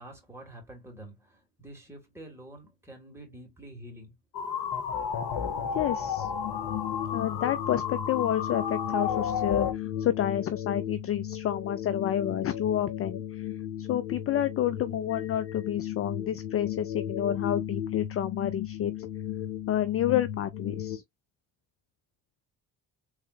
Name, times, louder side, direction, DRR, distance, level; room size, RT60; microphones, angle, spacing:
voice 1, 0.0-4.1 4.6-4.7, right 1 dB, 5° right, 2.5 m, -47 dB
sound 1, 4.3-9.7, left 7 dB, 50° left, 0.9 m, -32 dB
voice 2, 5.7-6.3 7.1-13.5 13.8-19.1 19.7-21.0, left 11 dB, 30° left, 0.4 m, -29 dB
sound 2, 6.1-21.0, left 10 dB, 90° left, 0.7 m, -35 dB
3.5 x 3.3 x 2.6 m
hypercardioid pair, 45°, 49 cm